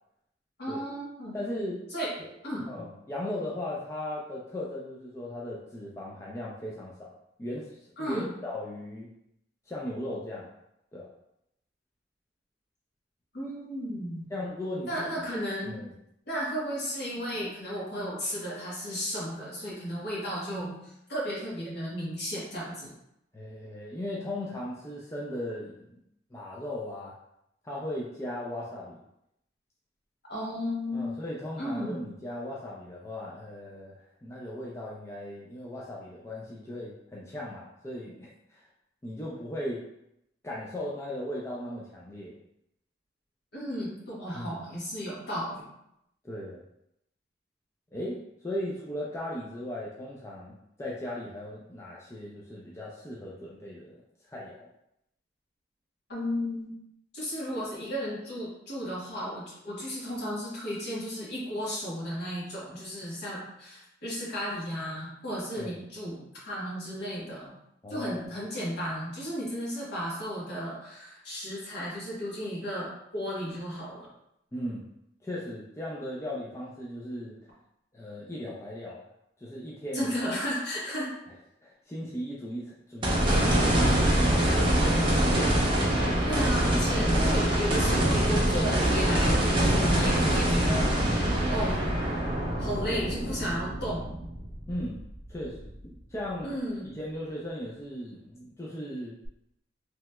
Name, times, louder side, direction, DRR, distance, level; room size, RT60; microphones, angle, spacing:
voice 1, 0.6-1.4 1.9-2.1 2.4-2.9 8.0-8.3 13.3-14.3 14.9-15.8 16.3-22.9 30.3-31.1 31.6-32.0 43.5-45.7 56.1-56.7 57.1-67.5 67.9-74.1 79.9-81.1 86.3-91.8 92.6-94.2 96.4-96.9, equal, 60° left, -6 dB, 1.2 m, -34 dB
voice 2, 1.3-1.8 2.6-7.1 7.4-9.1 9.7-10.5 10.9-11.1 14.3-15.3 15.6-15.9 23.3-26.0 26.3-27.1 27.6-29.0 30.9-38.7 39.0-39.8 40.4-42.4 44.3-44.6 46.2-46.6 47.9-54.0 54.3-54.7 65.6-65.7 67.8-68.3 74.5-74.9 75.2-77.4 77.9-79.0 79.4-80.2 81.6-85.2 86.0-86.3 94.7-95.0 95.3-95.8 96.1-96.5 96.8-99.2, left 1 dB, 15° left, -5 dB, 0.4 m, -37 dB
sound 1, 83.0-95.3 95.8-95.9 99.2-99.3, right 1 dB, 25° right, 0.7 m, -24 dB
3.2 x 2.9 x 2.2 m, 0.80 s
head